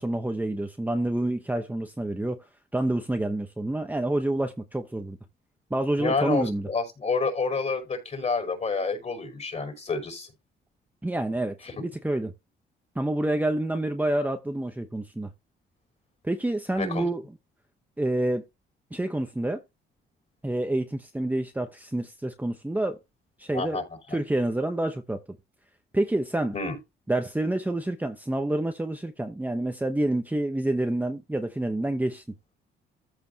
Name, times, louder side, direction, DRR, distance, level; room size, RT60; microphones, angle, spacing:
voice 1, 0.0-2.4 2.7-5.2 5.7-6.7 11.0-12.3 12.9-15.3 16.2-17.2 18.0-18.4 18.9-19.6 20.4-23.0 23.4-23.8 24.1-25.2 25.9-26.5 27.1-32.2, right 1 dB, 10° right, 1.0 m, -28 dB
voice 2, 6.0-10.3 16.8-17.0 23.5-23.8 26.5-26.8, left 4 dB, 35° left, 5.8 m, -28 dB
14.0 x 5.1 x 2.9 m
cardioid pair, 90°, 20 cm